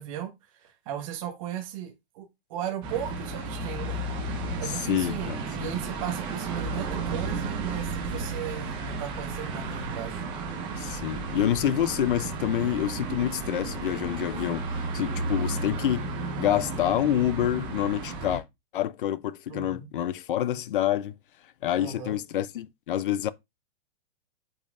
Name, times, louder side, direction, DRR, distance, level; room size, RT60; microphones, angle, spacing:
voice 1, 0.0-2.2 2.5-5.3 5.6-10.2 19.5-19.9 21.8-22.2, right 10 dB, 30° right, 1.3 m, -36 dB
sound 1, 2.8-18.4, right 3 dB, 15° right, 0.9 m, -33 dB
voice 2, 4.6-5.7 10.8-16.1 16.4-18.4 18.7-21.1 21.6-23.3, left 11 dB, 55° left, 0.5 m, -27 dB
8.7 x 5.4 x 2.5 m
supercardioid pair, 175°, 32 cm